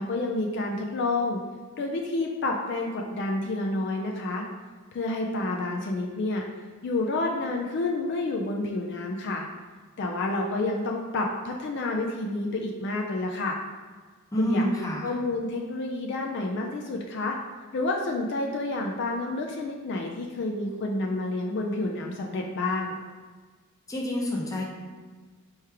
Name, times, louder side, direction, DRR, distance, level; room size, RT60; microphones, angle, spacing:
voice 1, 0.0-1.4 1.8-4.5 4.9-6.4 6.8-9.5 10.0-13.6 14.4-14.6 15.0-17.4 17.7-23.0, left 2 dB, 55° left, 1 dB, 0.4 m, -29 dB
voice 2, 14.3-15.1 23.9-24.6, equal, 15° left, -3 dB, 0.7 m, -27 dB
4.5 x 3.1 x 3.4 m, 1.4 s
head